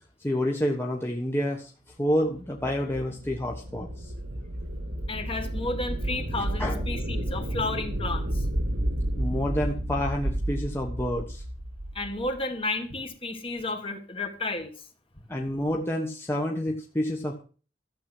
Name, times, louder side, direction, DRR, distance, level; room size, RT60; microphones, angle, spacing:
voice 1, 0.2-1.7 2.0-4.1 6.6-6.8 9.2-11.4 15.3-17.4, equal, 15° left, 0 dB, 1.3 m, -28 dB
sound 1, 2.3-12.4, right 1 dB, 65° right, 1.6 m, -31 dB
voice 2, 5.1-8.5 11.9-14.7, left 2 dB, 30° left, 6 dB, 1.8 m, -32 dB
13.0 x 7.6 x 6.1 m, 0.38 s
head